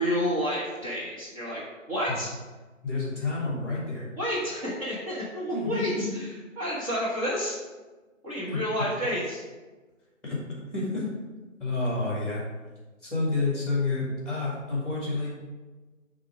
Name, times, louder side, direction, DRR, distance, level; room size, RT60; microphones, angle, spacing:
voice 1, 0.0-1.6 1.9-2.3 4.2-7.6 8.2-9.4, equal, 25° right, -8 dB, 1.4 m, -30 dB
voice 2, 2.8-4.1 5.5-6.0 8.5-8.6 10.2-10.4 10.7-11.0 11.6-12.4 13.0-15.4, left 3 dB, ahead, -5 dB, 2.0 m, -29 dB
9.0 x 3.7 x 5.0 m, 1.3 s
figure-of-eight pair, 155°, 40 cm